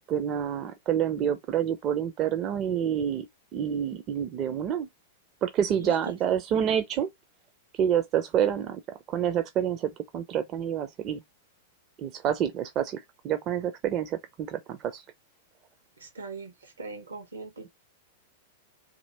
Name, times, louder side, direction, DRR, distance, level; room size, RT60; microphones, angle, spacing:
voice 1, 0.1-3.3 3.5-4.9 5.4-7.1 7.8-8.8 9.1-11.2 12.0-15.0, right 9 dB, 35° right, 0.5 m, -28 dB
voice 2, 5.7-6.1 16.0-17.7, right 3 dB, 75° right, 1.1 m, -41 dB
2.8 x 2.7 x 4.1 m
figure-of-eight pair, 95°, 0 cm